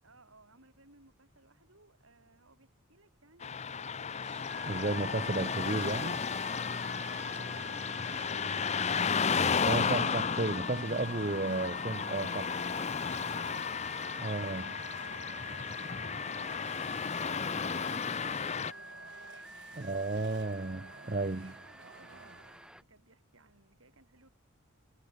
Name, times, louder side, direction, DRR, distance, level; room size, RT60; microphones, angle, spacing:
voice 1, 0.0-4.8 7.0-9.2 19.3-20.4 20.9-22.5 22.7-24.3, right 2 dB, 70° right, 7.8 m, -63 dB
Car passing by / Traffic noise roadway noise, 3.4-18.7, left 6 dB, 30° left, 0.6 m, -33 dB
sound 1, 4.2-4.9 5.6-23.0, right 5 dB, 55° right, 1.1 m, -54 dB
sound 2, 4.5-22.8, equal, 5° right, 1.6 m, -48 dB
voice 2, 4.6-6.2 9.7-12.5 14.2-14.7 19.8-21.5, right 2 dB, 35° right, 0.8 m, -33 dB
head